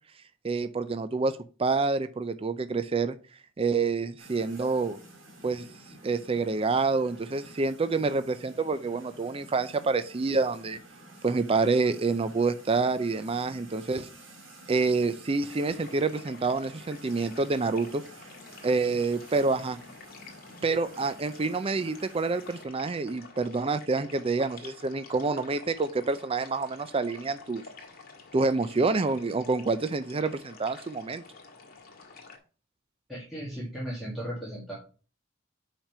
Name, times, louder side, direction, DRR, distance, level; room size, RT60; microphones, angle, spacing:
voice 1, 0.4-3.2 3.6-5.0 5.4-5.6 6.0-10.8 11.2-14.1 14.7-18.0 18.6-19.8 20.6-27.6 28.3-31.2, right 3 dB, 30° right, 12 dB, 0.4 m, -27 dB
sound 1, 4.2-22.6, right 1 dB, 70° right, 2.6 m, -51 dB
sound 2, 15.4-32.4, left 4 dB, 45° left, 1.8 m, -49 dB
voice 2, 33.1-34.7, equal, ahead, -8 dB, 1.9 m, -36 dB
5.9 x 5.1 x 5.5 m, 0.37 s
head